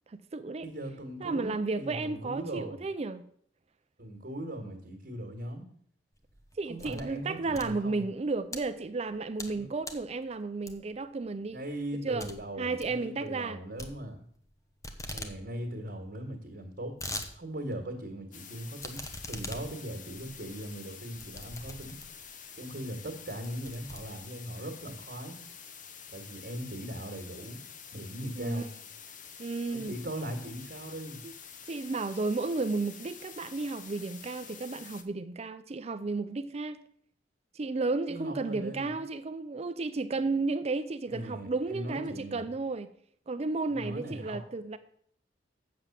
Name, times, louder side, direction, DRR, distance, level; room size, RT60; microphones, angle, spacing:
voice 1, 0.1-0.6 1.2-3.2 6.6-11.6 12.0-12.3 12.6-13.6 28.4-28.7 29.4-30.0 31.2-31.3 31.7-36.8 37.5-42.9 43.3-44.8, right 3 dB, 35° right, 0.4 m, -33 dB
voice 2, 0.6-2.8 4.0-5.6 6.7-8.1 9.5-9.7 11.5-14.2 15.0-17.0 17.3-19.0 19.3-22.0 22.6-25.4 26.1-27.6 27.9-28.7 29.7-31.2 38.1-39.0 41.1-42.5 43.7-44.4, right 1 dB, 55° right, 1.8 m, -39 dB
sound 1, 6.2-7.1 7.4-8.6 9.1-9.6 9.8-10.1 10.7-11.0 11.4-11.5 11.8-11.9 12.2-12.3 12.6-12.9 13.8-14.5 14.8-15.3 15.7-15.8 15.9-16.0 16.6-17.3 17.7-17.8 18.8-22.3 22.9-23.0 23.3-24.5, left 2 dB, 20° left, 1.0 m, -42 dB
sound 2, 18.3-35.0, left 7 dB, 45° left, 0.8 m, -48 dB
7.8 x 6.9 x 7.3 m
head